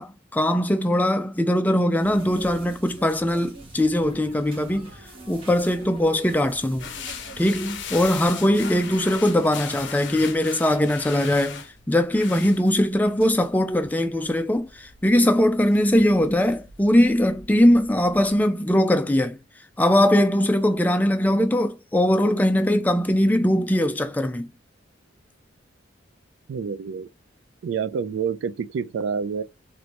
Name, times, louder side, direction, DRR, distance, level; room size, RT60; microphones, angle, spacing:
voice 1, 0.0-4.9 5.3-6.9 7.4-19.4 19.8-24.5, left 1 dB, 10° left, 0.4 m, -21 dB
sound 1, 2.0-8.6, right 1 dB, 30° right, 1.2 m, -44 dB
sound 2, 6.8-18.4, left 7 dB, 65° left, 0.6 m, -39 dB
voice 2, 26.5-27.1 27.6-29.4, right 6 dB, 70° right, 0.3 m, -28 dB
3.1 x 2.6 x 2.9 m
head